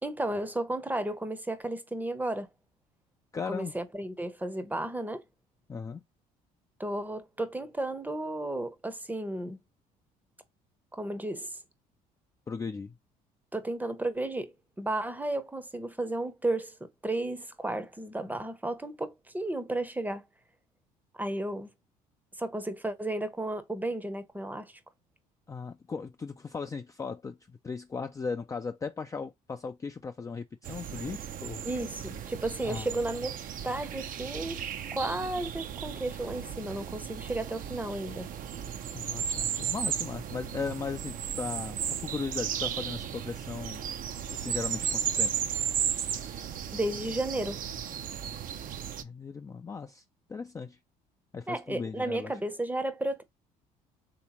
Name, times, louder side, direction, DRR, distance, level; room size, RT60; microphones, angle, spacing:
voice 1, 0.0-2.5 3.5-5.2 6.8-9.6 10.9-11.6 13.5-20.2 21.1-21.7 22.4-24.8 31.6-33.4 33.6-34.6 34.9-38.3 46.7-47.6 51.5-53.2, right 1 dB, 10° right, 0.7 m, -33 dB
voice 2, 3.3-3.7 5.7-6.0 12.5-12.9 25.5-27.4 27.6-31.6 32.6-32.9 38.9-43.8 44.3-45.3 49.0-50.0 50.3-50.8 51.3-52.3, left 5 dB, 20° left, 0.3 m, -37 dB
sound 1, 30.6-49.0, right 8 dB, 50° right, 0.5 m, -35 dB
3.3 x 2.9 x 2.9 m
hypercardioid pair, 70°, 18 cm